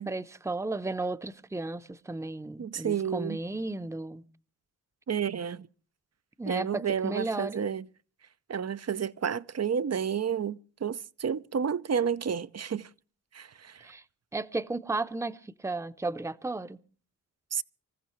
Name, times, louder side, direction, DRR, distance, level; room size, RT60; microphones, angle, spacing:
voice 1, 0.1-4.2 6.4-7.7 13.8-14.0 14.3-16.8, right 2 dB, 5° right, 0.8 m, -34 dB
voice 2, 2.6-3.4 5.1-5.7 6.5-7.9 8.5-12.9 13.3-13.9 17.5-17.6, right 7 dB, 40° right, 0.7 m, -31 dB
25.5 x 15.0 x 3.1 m
supercardioid pair, 40°, 40 cm